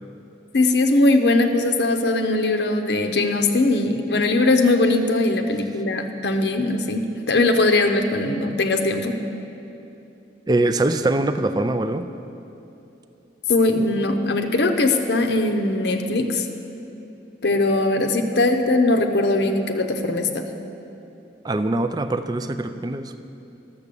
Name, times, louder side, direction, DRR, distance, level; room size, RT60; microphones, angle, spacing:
voice 1, 0.5-9.2 13.5-16.5 17.4-20.4, left 2 dB, 70° left, 5 dB, 0.7 m, -20 dB
voice 2, 10.5-12.1 21.4-23.1, right 2 dB, 20° right, 9 dB, 0.4 m, -23 dB
12.0 x 7.2 x 6.8 m, 2.8 s
head